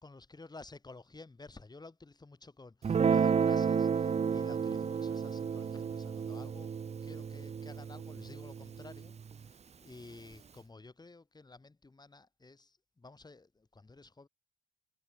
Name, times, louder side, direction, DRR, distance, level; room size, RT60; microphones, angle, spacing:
voice 1, 0.0-6.7 7.0-14.3, left 3 dB, 20° left, 3.8 m, -53 dB
Guitar, 2.8-9.4, right 6 dB, 35° right, 0.7 m, -32 dB
cardioid pair, 90°, 20 cm